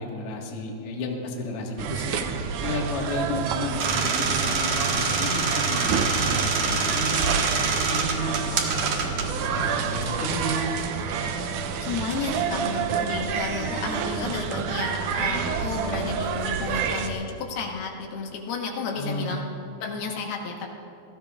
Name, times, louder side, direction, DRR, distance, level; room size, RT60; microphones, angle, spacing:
voice 1, 0.0-2.2 2.6-8.7 9.4-10.8 11.3-11.6 15.1-15.3 18.9-19.4, left 1 dB, 50° left, -1 dB, 1.9 m, -32 dB
sound 1, 1.8-17.1, right 6 dB, 85° right, 1.7 m, -29 dB
sound 2, 3.8-10.2, right 4 dB, 60° right, 2.0 m, -26 dB
voice 2, 11.8-19.4 19.8-20.7, left 4 dB, 75° left, 1 dB, 3.1 m, -32 dB
28.5 x 18.5 x 2.4 m, 2.6 s
omnidirectional pair, 4.7 m